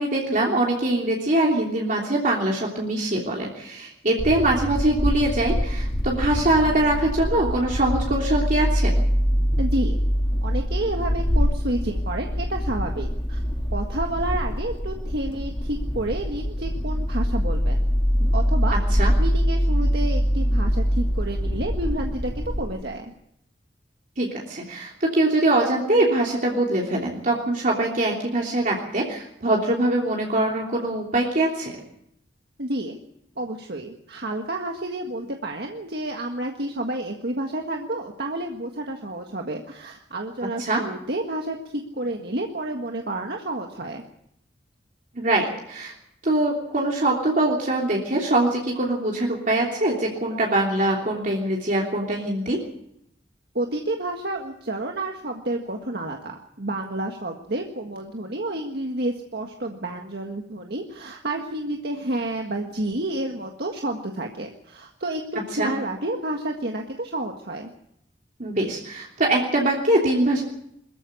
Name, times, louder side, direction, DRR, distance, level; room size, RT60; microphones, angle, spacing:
voice 1, 0.0-8.9 18.9-19.1 24.2-31.8 40.6-40.8 45.1-45.9 46.2-52.6 65.5-65.7 68.4-70.4, right 1 dB, 50° right, -2 dB, 3.2 m, -23 dB
sound 1, 4.2-22.7, equal, 30° left, 2.1 m, -24 dB
voice 2, 9.6-10.0 10.4-13.4 13.7-17.8 18.2-18.8 19.2-23.1 32.6-33.0 33.4-44.0 53.6-67.7, right 1 dB, 65° right, 2 dB, 1.7 m, -30 dB
22.0 x 14.5 x 8.3 m, 0.75 s
head